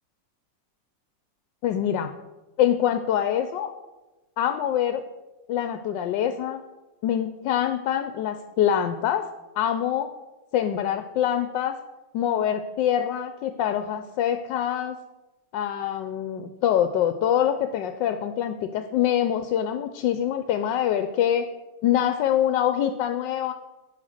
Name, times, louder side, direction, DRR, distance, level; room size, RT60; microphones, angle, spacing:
voice 1, 1.6-2.1 2.6-3.7 4.4-5.0 5.5-6.6 7.0-9.2 9.6-10.1 10.5-11.8 12.1-15.0 15.5-21.5 21.8-23.5, left 10 dB, 80° left, 8 dB, 1.3 m, -24 dB
9.3 x 7.6 x 6.5 m, 1.1 s
omnidirectional pair, 2.0 m